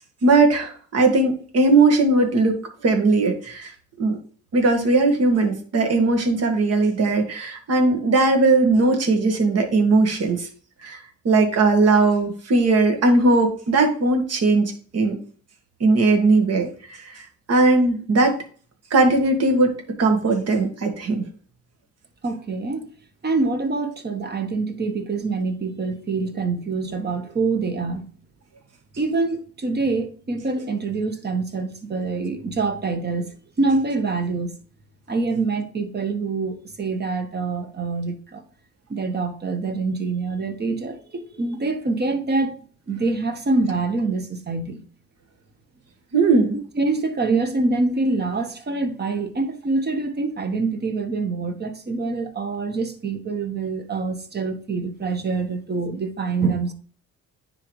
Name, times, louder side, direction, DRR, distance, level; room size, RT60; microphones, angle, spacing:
voice 1, 0.2-2.6 2.8-3.7 4.0-4.2 4.5-10.5 10.8-11.0 11.2-15.2 15.8-18.4 18.9-21.2 46.1-46.5 47.3-47.4, right 3 dB, 55° right, 1.7 m, -19 dB
voice 2, 22.2-22.9 23.2-28.1 29.0-33.3 33.6-34.6 35.1-38.4 38.9-44.8 46.8-56.7, right 3 dB, 35° right, 1.2 m, -25 dB
9.9 x 3.9 x 3.2 m
cardioid pair, 90°, 30 cm